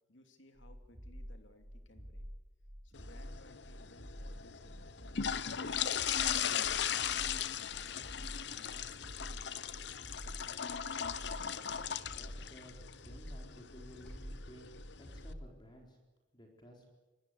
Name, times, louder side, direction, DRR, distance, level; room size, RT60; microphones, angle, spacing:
voice 1, 0.1-2.3 2.8-8.1, left 1 dB, 75° left, 6 dB, 2.9 m, -62 dB
sound 1, 0.6-15.5, equal, 30° right, 3.4 m, -48 dB
sound 2, 2.9-15.3, left 8 dB, 60° left, 0.8 m, -38 dB
sound 3, 6.5-7.9 9.1-9.6 9.9-10.4 13.9-15.3, equal, 5° left, 4.8 m, -58 dB
voice 2, 11.7-14.7 15.0-16.0 16.3-16.9, equal, 25° left, 1 dB, 4.1 m, -56 dB
25.0 x 20.0 x 8.2 m, 1.1 s
head